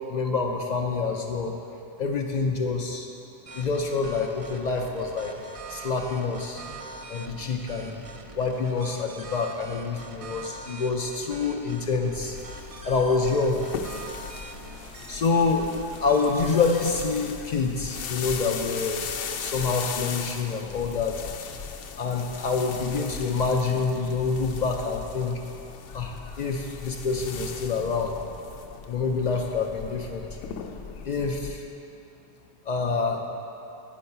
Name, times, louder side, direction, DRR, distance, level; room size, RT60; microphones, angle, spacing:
voice 1, 0.1-1.6 2.0-3.1 3.5-5.3 5.7-6.6 7.1-8.0 8.3-12.4 12.8-13.6 15.1-19.1 19.4-21.2 22.0-25.4 25.9-28.2 28.8-30.3 31.0-31.7 32.7-33.2, left 4 dB, 60° left, 2 dB, 0.4 m, -27 dB
sound 1, 3.5-16.8, right 3 dB, 70° right, 0.3 m, -44 dB
sound 2, 12.2-31.5, left 6 dB, 90° left, 0.9 m, -38 dB
9.6 x 4.6 x 5.5 m, 2.9 s
omnidirectional pair, 1.2 m